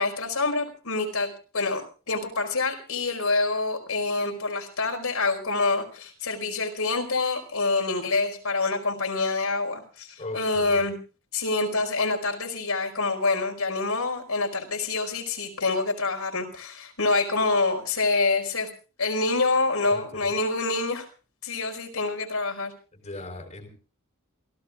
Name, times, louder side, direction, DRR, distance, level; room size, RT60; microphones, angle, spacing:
voice 1, 0.0-1.8 2.1-11.0 11.3-18.7 19.0-21.1 21.4-22.7, left 3 dB, 80° left, 2 dB, 5.0 m, -26 dB
voice 2, 10.2-10.9 19.9-20.3 22.9-23.7, left 2 dB, 30° left, 4 dB, 4.2 m, -39 dB
28.5 x 17.0 x 2.5 m, 0.37 s
head